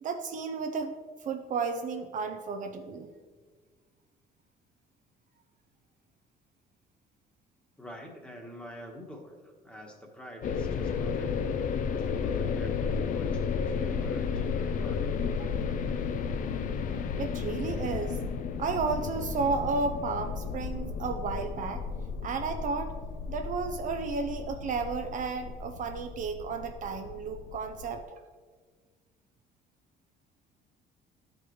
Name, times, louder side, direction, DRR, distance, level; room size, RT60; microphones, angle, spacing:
voice 1, 0.0-0.9 1.2-3.1 15.4-15.6 17.2-18.2 18.6-21.8 22.2-22.9 23.3-28.2, right 4 dB, 50° right, 6 dB, 0.6 m, -33 dB
voice 2, 7.8-11.3 11.9-15.0, left 1 dB, 5° left, 0 dB, 1.3 m, -46 dB
sound 1, 10.4-28.0, left 6 dB, 50° left, 0.5 m, -33 dB
10.5 x 5.1 x 3.1 m, 1.5 s
cardioid pair, 110°, 17 cm